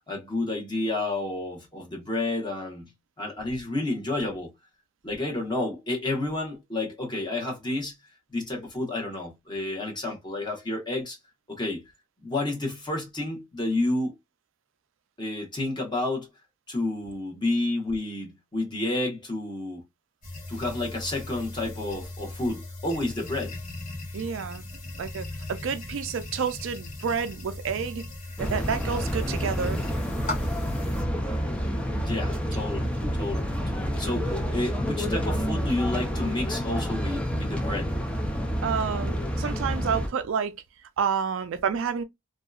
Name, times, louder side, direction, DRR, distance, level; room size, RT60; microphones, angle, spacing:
voice 1, 0.1-2.9 3.2-4.5 5.0-7.9 8.3-11.2 11.5-11.8 12.2-14.1 15.2-16.3 16.7-19.8 20.5-23.5 32.0-32.9 33.2-37.9, left 2 dB, 20° left, 1.0 m, -30 dB
sound 1, 20.2-31.0, left 2 dB, 40° left, 1.2 m, -38 dB
voice 2, 24.1-24.6 25.0-28.0 28.4-29.8 38.6-40.5 41.0-42.0, right 6 dB, 65° right, 0.4 m, -29 dB
sound 2, 28.4-40.1, equal, 5° left, 0.4 m, -29 dB
2.7 x 2.3 x 2.3 m
head